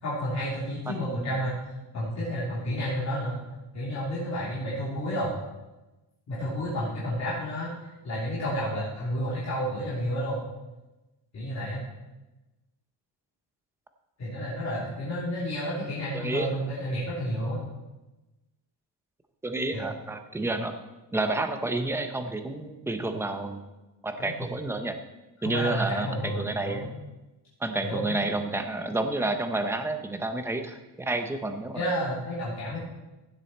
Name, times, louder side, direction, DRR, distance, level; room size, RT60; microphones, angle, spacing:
voice 1, 0.0-1.6 1.9-3.4 3.7-5.3 6.3-7.7 8.0-10.4 11.3-11.8 14.2-17.6 19.7-19.9 24.2-24.3 25.4-26.9 27.8-28.2 31.7-32.8, equal, 40° left, -9 dB, 3.3 m, -31 dB
voice 2, 0.9-1.4 16.1-16.5 19.4-20.8 21.1-23.6 24.0-25.0 25.4-26.9 27.6-31.8, right 2 dB, 5° right, 7 dB, 0.6 m, -30 dB
15.5 x 7.7 x 4.2 m, 1.1 s
cardioid pair, 175°, 43 cm